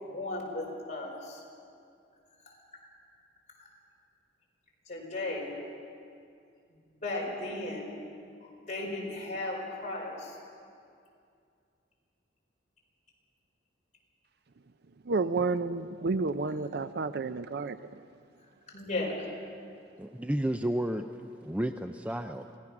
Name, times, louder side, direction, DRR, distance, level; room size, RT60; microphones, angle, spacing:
voice 1, 0.0-1.4 2.5-2.6 4.9-5.5 7.0-7.9 8.7-10.4 18.7-19.2, left 2 dB, 45° left, -2 dB, 4.9 m, -35 dB
voice 2, 15.1-18.0, right 3 dB, 60° right, 13 dB, 0.5 m, -31 dB
voice 3, 20.0-21.1 21.4-22.4, right 1 dB, 10° right, 7 dB, 0.5 m, -31 dB
26.5 x 17.5 x 6.0 m, 2.4 s
head